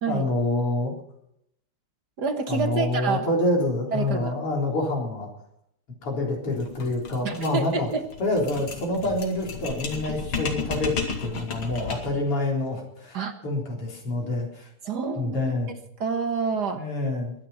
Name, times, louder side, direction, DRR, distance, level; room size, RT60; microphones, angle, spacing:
voice 1, 0.1-0.9 2.5-5.3 6.0-7.9 8.2-13.2 13.4-14.7 15.1-15.7 16.7-17.3, left 2 dB, 85° left, 0 dB, 4.8 m, -27 dB
voice 2, 2.2-3.3 3.9-4.3 7.2-8.0 13.1-13.3 14.8-15.6 16.0-16.8, right 5 dB, 50° right, 7 dB, 1.8 m, -27 dB
sound 1, 6.5-12.2, left 5 dB, 70° left, 3.1 m, -33 dB
22.0 x 10.0 x 5.7 m, 0.73 s
omnidirectional pair, 2.4 m